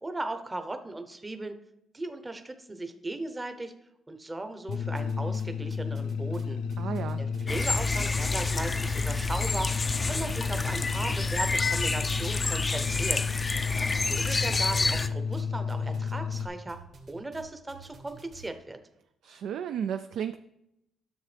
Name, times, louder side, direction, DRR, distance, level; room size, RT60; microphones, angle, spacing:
voice 1, 0.0-1.6 1.9-3.7 4.1-6.6 7.2-9.7 10.1-13.2 13.9-16.8 17.1-18.8, right 2 dB, 20° right, 7 dB, 0.7 m, -37 dB
sound 1, 4.7-16.5, left 6 dB, 80° left, 0.4 m, -32 dB
sound 2, 4.7-5.4 5.7-9.4 9.7-10.4 10.7-18.5, right 4 dB, 55° right, 1.6 m, -49 dB
voice 2, 6.8-7.2 19.2-20.4, right 8 dB, 75° right, 9 dB, 0.3 m, -33 dB
sound 3, 7.5-15.1, left 3 dB, 25° left, 0.4 m, -29 dB
9.8 x 6.6 x 3.3 m, 0.83 s
cardioid pair, 90°, 0 cm